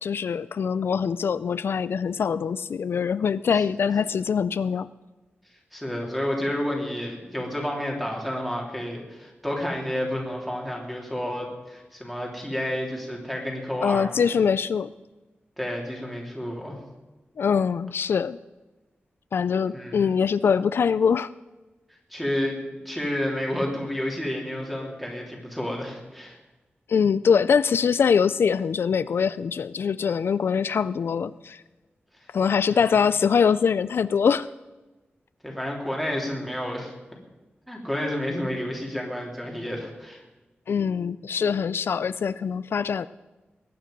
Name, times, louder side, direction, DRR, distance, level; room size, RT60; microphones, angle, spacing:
voice 1, 0.0-4.9 13.8-14.9 17.4-18.4 19.3-21.3 26.9-31.6 32.3-34.5 40.7-43.1, left 6 dB, 80° left, 16 dB, 0.3 m, -23 dB
voice 2, 5.7-14.1 15.6-16.8 19.6-20.1 22.1-26.4 32.7-33.0 35.4-36.9 37.7-40.2, left 1 dB, ahead, -1 dB, 3.2 m, -30 dB
20.5 x 9.4 x 5.3 m, 1.1 s
wide cardioid pair, 145°, 4 cm